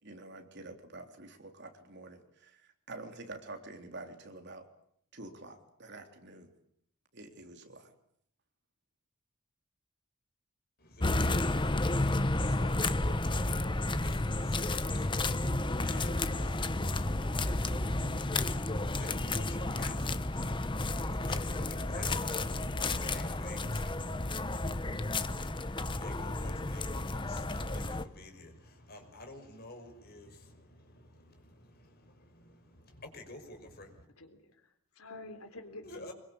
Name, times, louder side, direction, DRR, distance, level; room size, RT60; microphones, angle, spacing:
voice 1, 0.0-4.7 5.1-6.5 7.1-7.9, right 2 dB, 50° right, 5 dB, 3.5 m, -48 dB
voice 2, 10.8-24.2 25.8-34.1 35.8-36.1, left 2 dB, 45° left, 5 dB, 5.6 m, -51 dB
sound 1, 11.0-28.0, left 2 dB, 20° left, 1.0 m, -32 dB
voice 3, 34.2-36.1, left 2 dB, 80° left, 7 dB, 3.7 m, -49 dB
26.0 x 22.5 x 8.6 m, 0.69 s
head